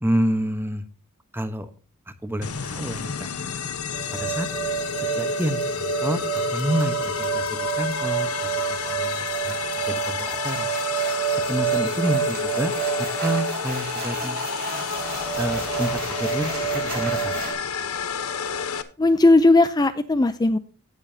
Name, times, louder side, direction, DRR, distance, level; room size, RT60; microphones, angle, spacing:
voice 1, 0.0-0.9 1.3-1.7 2.1-3.3 4.1-4.5 5.1-8.5 8.8-9.6 9.9-10.7 11.5-12.7 13.0-14.4 15.4-17.4, equal, 10° right, 10 dB, 1.0 m, -28 dB
sound 1, 2.4-18.8, left 6 dB, 85° left, 1.0 m, -30 dB
sound 2, 3.9-17.5, right 8 dB, 45° right, 4.0 m, -29 dB
voice 2, 19.0-20.6, left 2 dB, 20° left, 11 dB, 0.4 m, -17 dB
18.0 x 6.9 x 2.7 m, 0.36 s
head